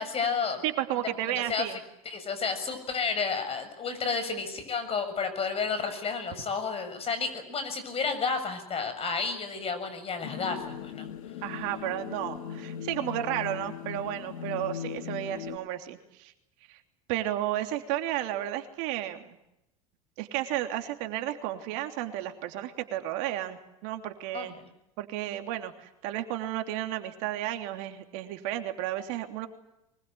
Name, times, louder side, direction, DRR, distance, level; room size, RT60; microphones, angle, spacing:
voice 1, 0.0-0.6 1.0-1.7 2.1-11.1 24.3-24.7, left 5 dB, 30° left, 10 dB, 7.2 m, -31 dB
voice 2, 0.6-1.8 11.4-16.3 16.7-16.8 17.1-19.4 20.2-24.6 25.0-29.5, right 13 dB, 65° right, 6 dB, 3.1 m, -33 dB
sound 1, 10.2-15.6, left 9 dB, 75° left, 2.2 m, -39 dB
24.5 x 21.0 x 9.4 m, 0.84 s
hypercardioid pair, 95°, 18 cm